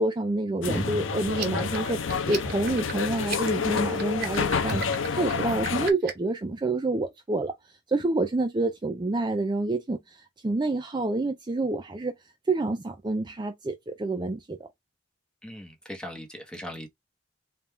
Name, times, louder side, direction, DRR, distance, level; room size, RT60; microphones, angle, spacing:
voice 1, 0.0-7.5 7.9-12.1 12.5-14.6, right 2 dB, 25° right, 0.4 m, -28 dB
sound 1, 0.6-5.9, left 5 dB, 85° left, 0.6 m, -29 dB
sound 2, 0.7-2.1 4.7-5.3, equal, 35° left, 0.8 m, -36 dB
sound 3, 1.3-6.3, right 7 dB, 50° right, 1.2 m, -37 dB
voice 2, 15.4-16.9, equal, 5° left, 0.9 m, -39 dB
3.6 x 2.3 x 4.4 m
head